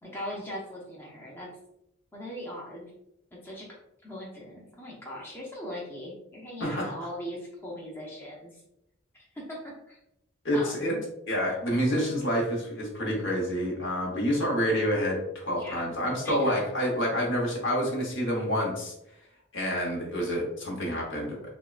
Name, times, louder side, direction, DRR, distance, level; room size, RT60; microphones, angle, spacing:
voice 1, 0.0-1.5 2.1-2.9 3.3-3.7 4.0-8.6 9.1-10.0 10.5-11.0 11.4-11.7 15.5-15.9 16.2-16.7, equal, 10° left, -4 dB, 0.5 m, -40 dB
voice 2, 10.4-10.9 11.3-18.9 19.5-21.4, equal, 65° left, -2 dB, 0.9 m, -28 dB
3.5 x 2.1 x 2.3 m, 0.83 s
head